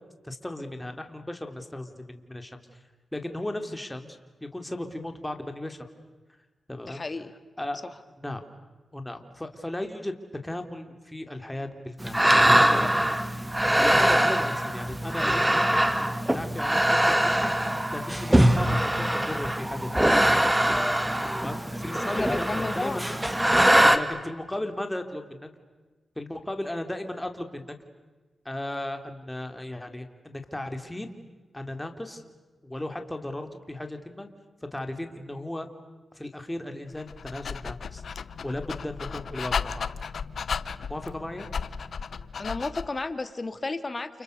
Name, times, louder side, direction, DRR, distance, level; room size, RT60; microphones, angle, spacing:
voice 1, 0.2-2.8 3.1-5.9 6.7-7.0 7.6-7.8 8.2-8.4 8.9-10.1 10.4-13.1 13.4-15.9 16.3-17.6 17.9-20.2 21.3-23.0 23.9-25.5 26.1-27.8 28.4-31.1 31.5-32.2 32.6-34.3 34.7-35.7 36.1-38.0 38.4-39.9 40.9-41.5, left 1 dB, 15° left, 6 dB, 3.5 m, -36 dB
voice 2, 6.9-7.3 21.9-23.0 42.4-44.2, left 3 dB, 40° left, 10 dB, 2.3 m, -33 dB
sound 1, 12.0-24.0, right 1 dB, 15° right, 2.1 m, -22 dB
Dog, 36.9-43.0, left 6 dB, 75° left, 0.9 m, -34 dB
29.5 x 29.5 x 6.9 m, 1.3 s
cardioid pair, 55°, 0 cm